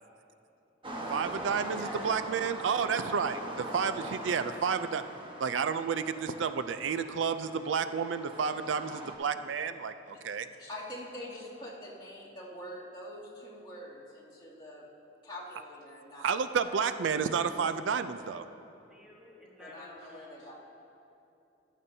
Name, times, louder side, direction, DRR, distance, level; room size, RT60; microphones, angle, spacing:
sound 1, 0.8-9.1, right 1 dB, 30° right, 1.1 m, -42 dB
voice 1, 1.1-5.0 5.4-10.5 16.2-18.5, right 6 dB, 85° right, 11 dB, 0.4 m, -31 dB
voice 2, 1.7-2.1 18.9-20.4, equal, 5° right, -4 dB, 1.2 m, -49 dB
voice 3, 10.6-14.9 15.2-16.3 16.6-16.8 19.6-20.6, left 1 dB, 25° left, -8 dB, 2.6 m, -45 dB
14.0 x 12.5 x 2.7 m, 2.8 s
head